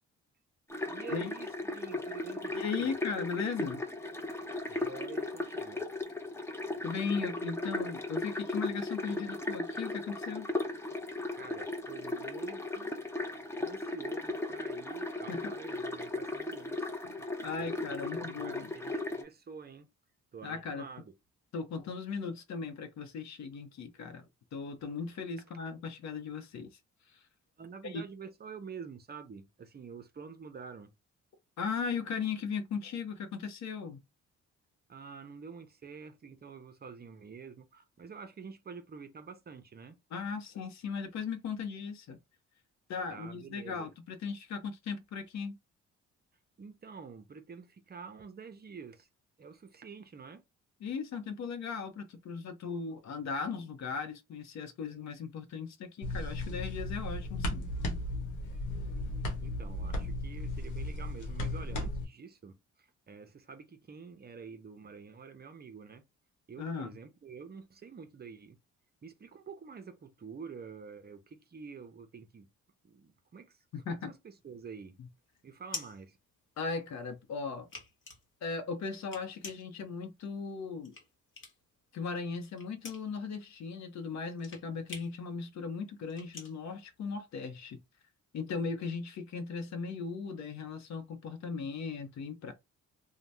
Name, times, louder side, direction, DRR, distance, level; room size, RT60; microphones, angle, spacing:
sound 1, 0.7-19.2, left 2 dB, 10° left, 0.6 m, -37 dB
voice 1, 0.9-2.9 4.7-5.8 11.3-13.0 13.6-16.9 17.6-19.9 20.3-21.0 27.6-30.9 34.9-40.0 43.1-43.9 46.6-49.1 49.4-50.4 59.4-66.0 66.5-68.6 69.0-72.5 72.8-73.6 73.8-75.0 75.4-76.2, right 5 dB, 30° right, 0.6 m, -48 dB
voice 2, 2.5-3.8 6.8-10.5 15.3-15.5 17.0-18.7 20.4-20.9 21.5-24.2 24.5-26.7 27.1-27.2 27.8-28.0 31.6-34.0 40.1-42.2 42.9-45.6 50.8-57.7 66.6-66.9 73.7-74.1 76.6-77.7 78.4-80.9 81.9-87.8 88.3-92.5, left 5 dB, 65° left, 0.7 m, -37 dB
sound 2, 56.0-62.0, left 1 dB, 85° left, 1.1 m, -35 dB
sound 3, 74.4-77.0 77.4-81.8 82.1-87.6, left 3 dB, 40° left, 1.1 m, -47 dB
2.7 x 2.2 x 3.3 m
cardioid pair, 90°, 30 cm